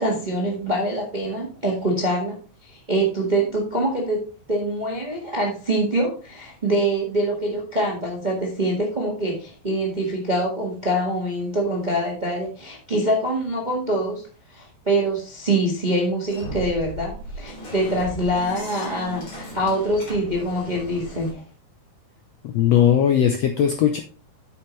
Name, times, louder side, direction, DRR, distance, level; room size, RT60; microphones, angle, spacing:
voice 1, 0.0-2.3 2.6-14.2 14.5-21.4, right 1 dB, 25° right, -1 dB, 0.9 m, -24 dB
sound 1, 16.3-21.3, right 1 dB, 40° left, 4.7 m, -36 dB
voice 2, 22.4-24.0, left 9 dB, 75° left, 6 dB, 1.5 m, -18 dB
9.0 x 7.3 x 3.2 m, 0.38 s
omnidirectional pair, 3.8 m